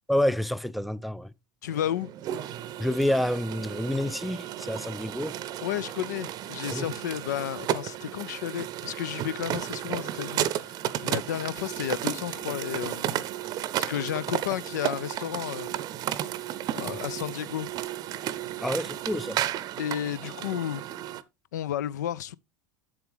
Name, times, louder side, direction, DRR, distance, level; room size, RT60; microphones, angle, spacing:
voice 1, 0.1-1.3 2.8-5.4 6.7-6.9 16.8-17.0 18.6-19.5, left 1 dB, ahead, 0.3 m, -28 dB
voice 2, 1.6-2.1 5.6-13.2 13.8-15.8 16.7-17.7 19.8-20.8 21.5-22.4, left 11 dB, 70° left, 0.4 m, -32 dB
sound 1, 1.7-21.2, right 12 dB, 40° right, 0.6 m, -33 dB
7.8 x 7.3 x 3.3 m
hypercardioid pair, 80°, 10 cm